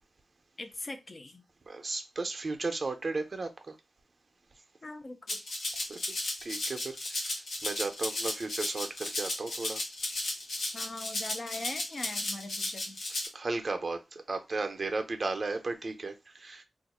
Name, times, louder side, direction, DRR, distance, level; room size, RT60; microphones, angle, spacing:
voice 1, 0.6-1.4 4.8-5.4 10.7-13.0, left 2 dB, 35° left, 0.5 m, -41 dB
voice 2, 1.7-3.5 5.9-6.0 6.4-7.0 7.6-9.8 13.3-14.0 14.3-16.6, right 3 dB, 40° right, 0.6 m, -34 dB
Rattle (instrument), 5.3-13.3, left 2 dB, 90° left, 1.0 m, -35 dB
2.5 x 2.4 x 4.1 m
wide cardioid pair, 125°, 0 cm